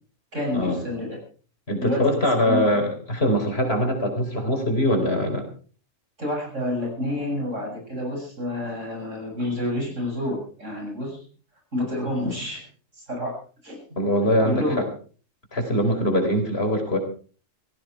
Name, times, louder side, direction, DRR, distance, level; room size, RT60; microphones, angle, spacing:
voice 1, 0.3-1.2 1.8-2.2 2.4-2.6 6.2-11.2 11.7-12.7 12.9-13.4 13.6-13.8 14.4-14.8, left 1 dB, 70° right, 1 dB, 7.8 m, -28 dB
voice 2, 1.7-5.5 14.0-14.8 15.5-17.0, equal, 50° left, 4 dB, 4.4 m, -22 dB
17.0 x 16.5 x 4.7 m, 0.40 s
omnidirectional pair, 1.3 m